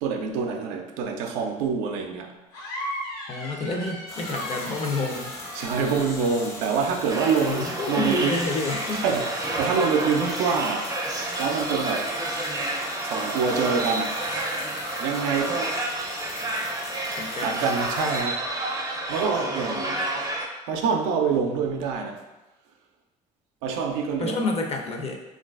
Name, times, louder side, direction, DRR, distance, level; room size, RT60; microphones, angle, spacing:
voice 1, 0.0-2.4 5.5-8.4 8.9-10.9 11.4-12.1 13.0-14.2 15.0-15.8 17.4-18.4 19.1-20.0 20.7-22.2 23.6-24.4, right 5 dB, 80° right, 4 dB, 0.4 m, -26 dB
sound 1, 2.5-6.9, equal, 85° left, 0.7 m, -37 dB
voice 2, 3.3-5.3 7.4-9.0 17.2-17.6 24.2-25.2, left 2 dB, 35° left, 2 dB, 0.5 m, -29 dB
sound 2, 4.1-18.2, left 2 dB, 65° left, 0.9 m, -39 dB
sound 3, 7.1-20.5, right 2 dB, 20° right, 0.5 m, -30 dB
3.1 x 2.4 x 2.3 m, 1.0 s
hypercardioid pair, 65°, 18 cm